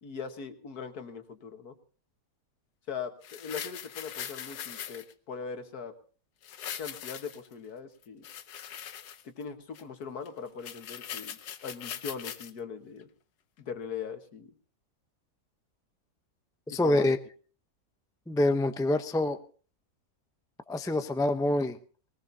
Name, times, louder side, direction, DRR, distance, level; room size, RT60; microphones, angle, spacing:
voice 1, 0.0-1.8 2.9-5.9 6.8-8.2 9.2-13.1 13.6-14.5 16.7-17.1, left 6 dB, 75° left, 7 dB, 1.9 m, -40 dB
sound 1, 3.2-5.1 6.4-7.5 8.0-9.4 9.7-9.8 10.3-10.4 10.6-12.5 13.0-13.1, left 9 dB, 90° left, 1.5 m, -41 dB
voice 2, 16.7-17.2 18.3-19.4 20.7-21.8, left 1 dB, 5° left, 9 dB, 0.3 m, -26 dB
21.0 x 19.0 x 2.8 m, 0.40 s
omnidirectional pair, 1.7 m